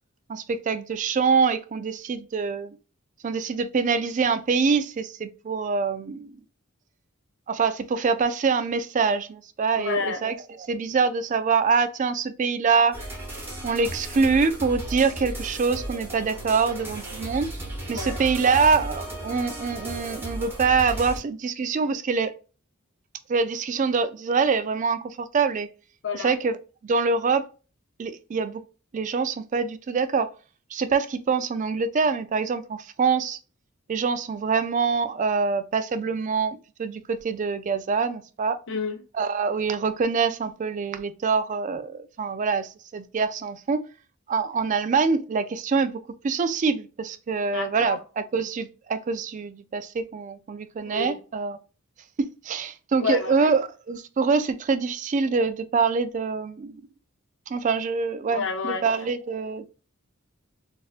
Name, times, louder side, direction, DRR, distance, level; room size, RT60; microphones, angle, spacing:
voice 1, 0.3-2.8 3.2-6.4 7.5-10.3 10.6-13.0 13.6-17.5 17.9-22.3 23.3-25.7 26.1-26.5 26.8-27.4 28.0-28.6 28.9-30.3 30.7-33.4 33.9-38.6 39.2-43.8 44.3-51.6 52.2-56.7 57.5-59.7, right 5 dB, 35° right, 0.3 m, -25 dB
voice 2, 9.7-10.2 17.9-18.2 26.0-26.3 38.7-39.0 47.5-48.0 50.9-51.2 53.0-53.5 58.3-58.9, left 5 dB, 60° left, 0.6 m, -29 dB
sound 1, 12.9-21.2, right 1 dB, 10° right, 1.0 m, -35 dB
4.2 x 2.5 x 2.4 m
head